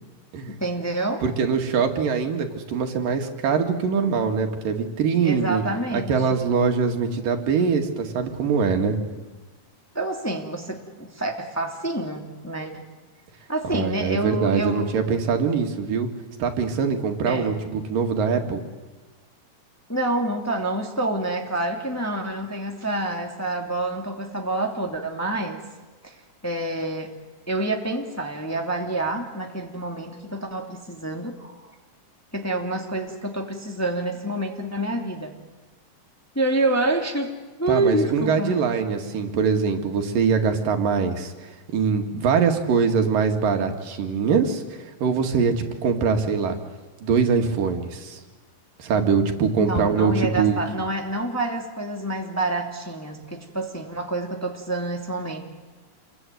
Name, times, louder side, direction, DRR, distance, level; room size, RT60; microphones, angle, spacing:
voice 1, 0.5-1.2 5.2-6.4 9.9-12.9 13.5-14.9 17.3-17.6 19.9-25.6 26.0-26.2 26.4-27.1 27.5-31.6 32.3-35.4 36.3-37.3 37.6-38.6 49.6-55.4, right 2 dB, 5° left, 2 dB, 2.1 m, -27 dB
voice 2, 1.2-5.6 5.9-9.0 13.7-16.1 16.4-18.6 37.7-46.6 47.0-48.2 48.8-50.6, right 5 dB, 90° right, 5 dB, 3.9 m, -23 dB
28.5 x 22.5 x 9.3 m, 1.2 s
omnidirectional pair, 3.8 m